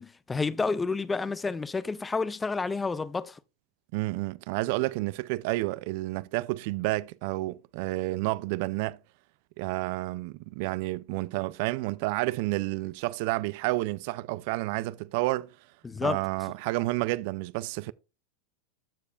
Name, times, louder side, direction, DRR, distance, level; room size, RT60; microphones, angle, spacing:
voice 1, 0.0-3.4 15.8-16.2, left 4 dB, 15° left, 0.4 m, -30 dB
voice 2, 3.9-9.0 9.6-15.6 16.0-17.9, right 20 dB, 55° right, 0.4 m, -30 dB
13.5 x 4.7 x 2.4 m
hypercardioid pair, 120°, 0 cm